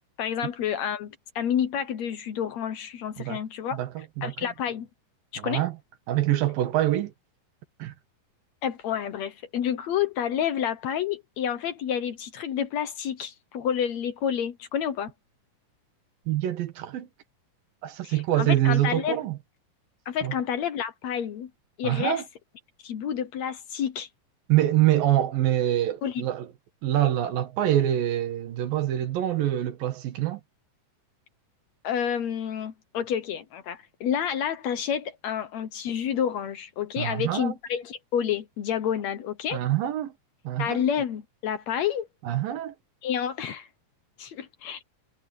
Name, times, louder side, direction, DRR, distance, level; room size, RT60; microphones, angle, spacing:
voice 1, 0.2-3.8 4.2-4.9 5.3-5.6 8.6-15.1 18.0-19.2 20.1-21.5 21.8-22.2 22.8-24.1 26.0-26.2 31.8-39.6 40.6-42.1 43.0-43.7 44.2-44.8, left 9 dB, 65° left, 2.0 m, -29 dB
voice 2, 3.7-4.3 5.4-5.7 6.1-7.1 7.8-7.9 16.3-17.1 17.8-19.4 20.2-20.3 21.8-22.2 24.5-26.5 26.8-30.4 37.0-37.5 39.5-40.1 40.4-40.8 42.3-42.7, right 13 dB, 85° right, 3.3 m, -25 dB
omnidirectional pair, 3.9 m